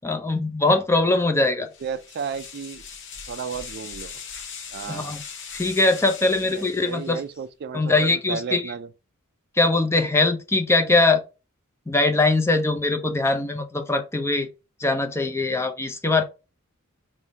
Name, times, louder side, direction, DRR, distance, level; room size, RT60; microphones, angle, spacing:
voice 1, 0.0-1.7 4.9-5.2 5.5-7.2 7.7-8.7 9.6-11.2 11.9-14.5 14.8-16.2, left 2 dB, 10° left, 0.5 m, -21 dB
voice 2, 1.6-2.8 3.3-4.1 4.7-5.2 6.4-8.9, right 6 dB, 45° right, 0.3 m, -33 dB
sound 1, 1.7-7.3, left 6 dB, 55° left, 0.9 m, -40 dB
3.5 x 2.6 x 4.1 m
head